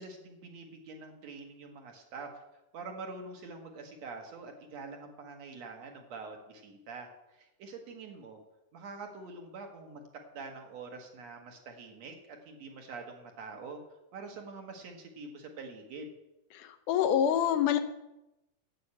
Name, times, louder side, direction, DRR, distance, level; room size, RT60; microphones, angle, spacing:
voice 1, 0.0-2.3 2.7-8.4 8.7-13.8 14.1-16.1, right 4 dB, 60° right, 3 dB, 2.3 m, -45 dB
voice 2, 16.5-17.8, left 9 dB, 75° left, 9 dB, 2.0 m, -26 dB
9.7 x 7.7 x 8.7 m, 0.93 s
omnidirectional pair, 3.9 m